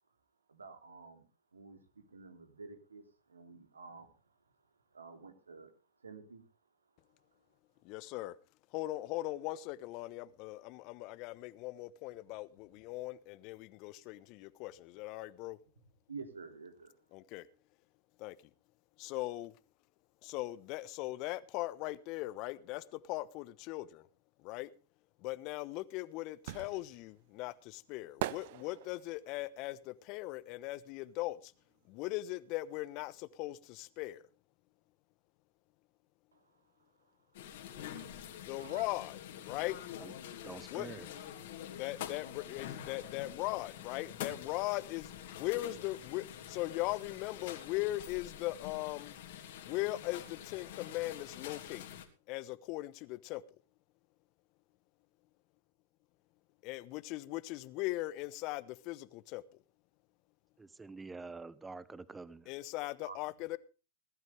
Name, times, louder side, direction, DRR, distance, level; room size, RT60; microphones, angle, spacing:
voice 1, 0.5-1.2 1.5-4.1 4.9-5.7 6.0-6.4 16.1-16.9 36.3-36.5 36.8-37.1 37.4-37.7 38.5-38.9 63.0-63.2, right 4 dB, 85° right, 3.0 m, -50 dB
voice 2, 7.8-8.3 8.7-15.6 17.1-17.5 18.2-18.4 19.0-19.5 20.2-24.1 24.4-24.7 25.2-31.5 31.9-34.2 38.5-39.8 40.7-40.9 41.7-49.2 49.6-51.9 52.3-53.4 56.6-59.4 62.5-63.6, left 18 dB, 45° left, 1.1 m, -39 dB
sound 1, 25.6-31.4 31.7-33.3 33.6-33.7, right 16 dB, 55° right, 0.7 m, -44 dB
sound 2, 37.3-52.1, left 10 dB, 60° left, 3.0 m, -46 dB
voice 3, 40.4-41.1 60.6-62.5, right 3 dB, 10° right, 0.8 m, -47 dB
20.5 x 12.5 x 3.5 m
hypercardioid pair, 100°, 0 cm